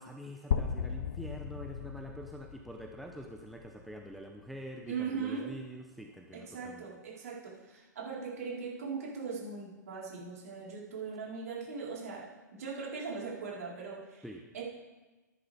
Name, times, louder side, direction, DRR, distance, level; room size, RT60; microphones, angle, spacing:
voice 1, 0.0-6.9 14.2-14.4, equal, ahead, 1 dB, 0.8 m, -45 dB
sound 1, 0.5-4.4, left 7 dB, 50° left, 0.8 m, -37 dB
voice 2, 4.9-5.5 6.5-14.3 14.5-14.6, right 5 dB, 55° right, -5 dB, 4.4 m, -39 dB
15.0 x 10.5 x 3.6 m, 1.2 s
figure-of-eight pair, 110°, 10 cm